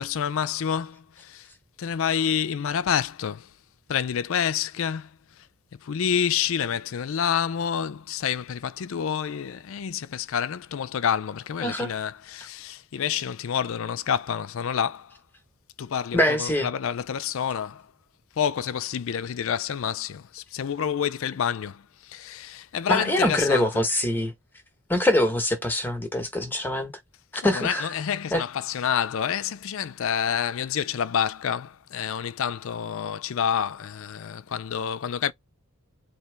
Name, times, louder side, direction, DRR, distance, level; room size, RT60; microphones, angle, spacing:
voice 1, 0.0-1.5 1.8-3.5 3.9-5.1 5.8-15.1 15.8-17.9 18.4-23.7 27.4-35.3, left 8 dB, 60° left, 0.4 m, -28 dB
voice 2, 11.6-11.9 16.1-16.7 22.9-24.3 24.9-26.9 27.4-27.9 28.3-28.4, left 1 dB, 10° left, 1.0 m, -24 dB
4.3 x 2.8 x 3.3 m
head